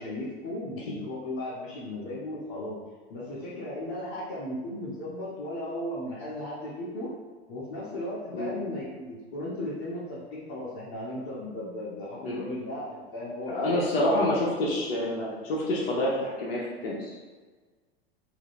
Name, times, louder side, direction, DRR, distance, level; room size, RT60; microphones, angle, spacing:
voice 1, 0.0-2.7 3.1-7.1 7.5-14.5, left 1 dB, 45° left, -10 dB, 1.4 m, -36 dB
voice 2, 13.5-17.2, left 1 dB, 65° left, -4 dB, 0.9 m, -28 dB
4.7 x 2.7 x 3.2 m, 1.4 s
hypercardioid pair, 90°, 31 cm